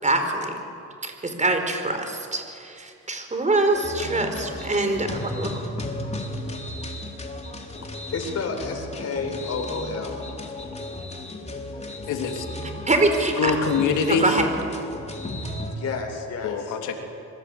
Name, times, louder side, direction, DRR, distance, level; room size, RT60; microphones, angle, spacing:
voice 1, 0.0-0.6 1.0-5.5 12.9-13.5 14.1-14.5, right 2 dB, 25° right, 6 dB, 4.7 m, -24 dB
sound 1, 3.7-15.8, left 1 dB, 20° left, 3.9 m, -35 dB
voice 2, 8.1-10.1 15.7-16.8, left 4 dB, 55° left, 3 dB, 5.8 m, -30 dB
voice 3, 12.1-12.5 13.4-14.3 16.4-17.0, left 5 dB, 85° left, 4 dB, 3.4 m, -24 dB
26.0 x 23.0 x 8.9 m, 2.6 s
cardioid pair, 90°, 30 cm